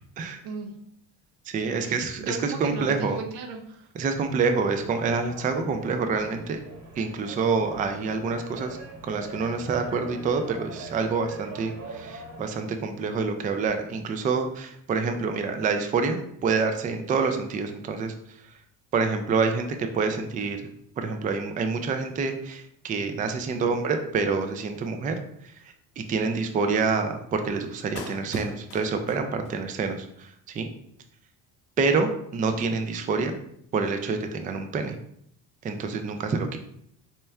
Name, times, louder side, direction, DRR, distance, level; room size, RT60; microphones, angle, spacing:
voice 1, 0.4-0.8 1.7-3.9 23.6-23.9, right 4 dB, 80° right, 3 dB, 0.8 m, -37 dB
voice 2, 1.5-3.2 4.0-6.6 7.0-8.8 9.0-18.1 18.9-20.6 21.0-25.5 26.0-30.7 31.8-33.4 33.7-35.0 35.6-36.6, right 4 dB, 20° right, 7 dB, 0.3 m, -27 dB
sound 1, 4.7-12.5, right 3 dB, 45° right, 1.2 m, -42 dB
Clapping, 28.0-29.9 30.2-30.3, left 6 dB, 80° left, 0.7 m, -45 dB
4.3 x 2.2 x 3.3 m, 0.70 s
supercardioid pair, 95°, 40 cm